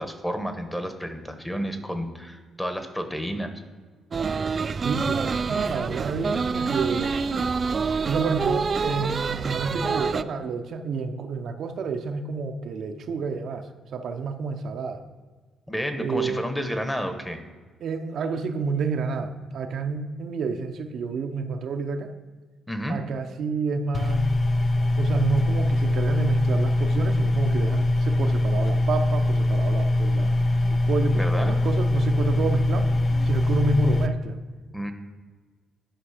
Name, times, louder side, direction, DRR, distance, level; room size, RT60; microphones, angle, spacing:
voice 1, 0.0-3.5 15.7-17.4 22.7-23.0 31.1-31.6 34.7-34.9, equal, 5° left, 7 dB, 1.1 m, -30 dB
sound 1, 4.1-10.2, right 5 dB, 40° right, 0.4 m, -27 dB
voice 2, 4.8-7.1 8.1-15.0 16.0-16.4 17.8-22.1 22.9-24.3 25.0-30.3 30.9-32.9 33.2-34.4, right 4 dB, 65° right, 5 dB, 0.7 m, -29 dB
sound 2, 23.9-34.1, left 1 dB, 35° left, 0.5 m, -22 dB
11.5 x 5.1 x 5.0 m, 1.5 s
cardioid pair, 90°, 0 cm